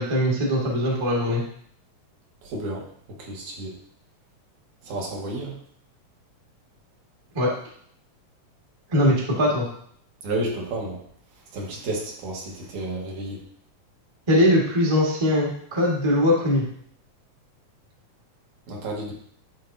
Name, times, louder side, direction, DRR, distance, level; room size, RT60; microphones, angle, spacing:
voice 1, 0.0-1.4 7.3-7.5 8.9-9.6 14.3-16.6, left 1 dB, 30° right, -4 dB, 0.5 m, -21 dB
voice 2, 2.4-2.8 3.2-3.8 4.8-5.6 10.2-11.0 11.5-13.4 18.7-19.1, right 2 dB, 80° right, -2 dB, 2.7 m, -31 dB
10.0 x 4.0 x 2.7 m, 0.64 s
omnidirectional pair, 3.5 m